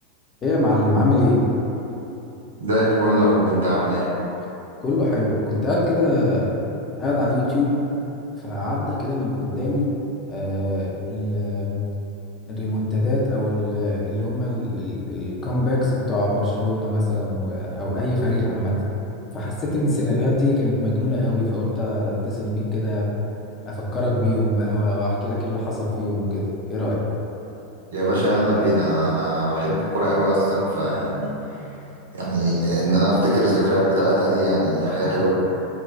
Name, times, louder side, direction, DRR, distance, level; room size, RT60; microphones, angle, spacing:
voice 1, 0.4-1.4 4.8-6.5 7.0-7.8 8.4-9.9 10.3-11.8 12.5-18.8 19.3-23.1 23.7-27.0, left 1 dB, 30° left, -5 dB, 0.6 m, -23 dB
voice 2, 2.6-4.1 27.9-31.3 32.1-35.3, right 1 dB, 75° right, -7 dB, 0.7 m, -20 dB
2.6 x 2.2 x 3.1 m, 2.9 s
figure-of-eight pair, 85°, 0 cm